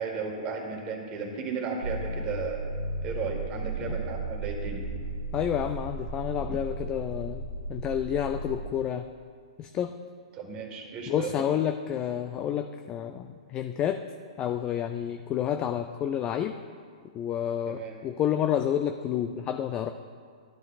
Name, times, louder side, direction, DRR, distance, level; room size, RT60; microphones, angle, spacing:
voice 1, 0.0-2.7 3.0-4.9 10.3-11.6 17.7-17.9, right 5 dB, 30° right, 1 dB, 1.7 m, -34 dB
sound 1, 1.8-8.7, right 2 dB, 90° left, 1.9 m, -35 dB
voice 2, 5.3-7.4 7.7-9.1 9.6-9.9 11.1-14.0 14.4-16.6 17.1-19.9, left 10 dB, 25° left, 7 dB, 0.3 m, -29 dB
12.5 x 9.8 x 2.4 m, 2.1 s
hypercardioid pair, 120°, 3 cm